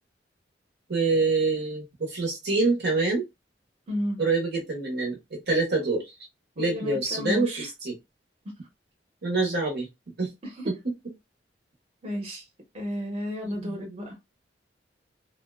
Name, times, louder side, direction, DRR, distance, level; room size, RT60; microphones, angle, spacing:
voice 1, 0.9-3.2 4.2-5.2 5.5-6.0 6.6-7.9 9.2-9.9 10.2-10.3 10.7-10.8 13.4-13.7, right 3 dB, 60° right, 0.8 m, -26 dB
voice 2, 3.9-4.2 6.6-7.7 10.4-10.7 12.0-12.4 12.7-14.2, left 1 dB, 35° right, 0.9 m, -32 dB
2.5 x 2.2 x 2.3 m
head